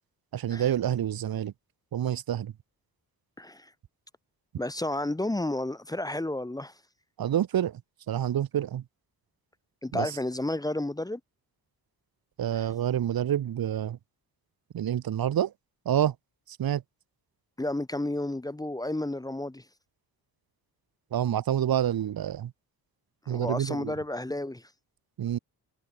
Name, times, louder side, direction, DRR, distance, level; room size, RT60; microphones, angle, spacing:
voice 1, 0.3-1.5 1.9-2.5 7.2-7.8 8.1-8.8 9.9-10.1 12.4-14.0 14.7-15.5 15.9-16.1 16.5-16.8 21.1-22.5 23.3-23.9 25.2-25.4, right 10 dB, 75° right, 2.4 m, -28 dB
voice 2, 3.4-3.7 4.6-6.7 9.8-11.2 12.5-12.7 17.6-19.6 23.2-24.7, left 1 dB, 10° left, 1.4 m, -31 dB
wide cardioid pair, 140°, 37 cm